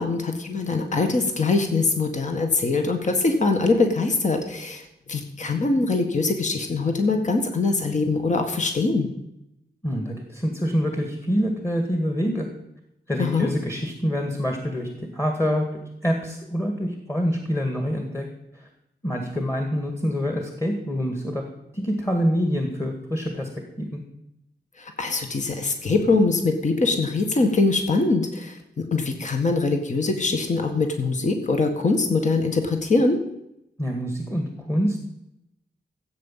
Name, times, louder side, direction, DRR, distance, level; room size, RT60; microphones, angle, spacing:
voice 1, 0.0-4.8 5.1-9.1 13.2-13.5 24.8-33.2, left 3 dB, 45° left, 5 dB, 1.7 m, -23 dB
voice 2, 9.8-12.5 13.1-15.7 16.0-18.3 18.5-18.6 19.0-21.4 21.7-23.5 23.8-24.0 33.8-35.1, equal, 15° left, 4 dB, 2.1 m, -26 dB
15.5 x 8.5 x 7.5 m, 0.83 s
wide cardioid pair, 135°, 17 cm